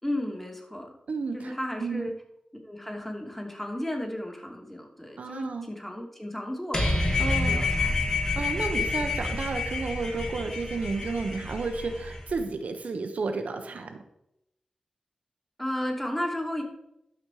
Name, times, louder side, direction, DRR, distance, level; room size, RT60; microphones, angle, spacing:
voice 1, 0.0-0.9 1.3-2.1 2.6-7.9 15.6-16.6, left 1 dB, 10° left, 1 dB, 2.5 m, -34 dB
voice 2, 1.1-1.5 1.8-2.1 5.2-5.7 7.2-7.7 8.4-14.0, right 4 dB, 80° right, 6 dB, 1.0 m, -32 dB
sound 1, 6.7-12.3, left 3 dB, 30° left, 2.6 m, -28 dB
11.5 x 6.3 x 4.9 m, 0.82 s
cardioid pair, 65°, 2 cm